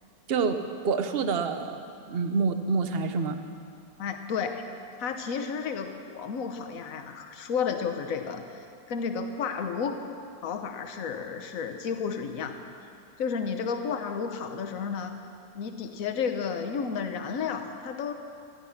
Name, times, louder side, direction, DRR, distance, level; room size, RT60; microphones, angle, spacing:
voice 1, 0.8-3.4, right 4 dB, 45° right, 7 dB, 0.9 m, -27 dB
voice 2, 4.0-4.6 5.0-10.0 10.4-12.6 13.2-15.1 15.5-18.1, left 6 dB, 55° left, 6 dB, 1.3 m, -32 dB
16.5 x 13.0 x 5.9 m, 2.5 s
omnidirectional pair, 1.8 m